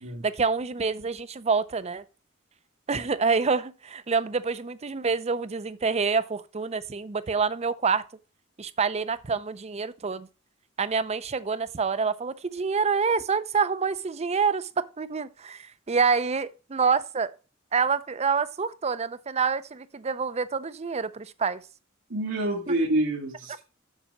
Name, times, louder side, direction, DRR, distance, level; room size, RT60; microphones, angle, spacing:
voice 1, 0.2-2.0 2.9-8.0 8.6-10.3 10.8-17.3 17.7-21.6, right 5 dB, 35° right, 0.5 m, -27 dB
voice 2, 22.1-23.6, right 1 dB, 80° right, 1.6 m, -27 dB
7.3 x 6.1 x 5.3 m
head